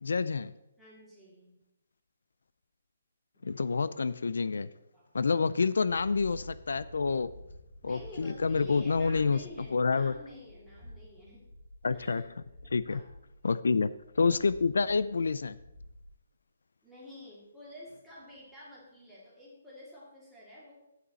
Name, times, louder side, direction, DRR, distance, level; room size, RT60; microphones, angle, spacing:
voice 1, 0.0-0.5 3.4-4.7 5.1-7.3 7.8-9.4 9.7-10.1 11.8-12.2 12.7-13.0 13.4-15.6, left 4 dB, 85° left, 16 dB, 0.4 m, -28 dB
voice 2, 0.8-1.6 4.9-5.1 7.8-11.5 11.9-12.3 12.6-13.1 16.8-20.8, left 1 dB, ahead, -7 dB, 2.2 m, -50 dB
sound 1, 5.9-16.1, equal, 35° left, 2.7 m, -50 dB
11.0 x 8.5 x 4.1 m, 0.90 s
hypercardioid pair, 175°, 0 cm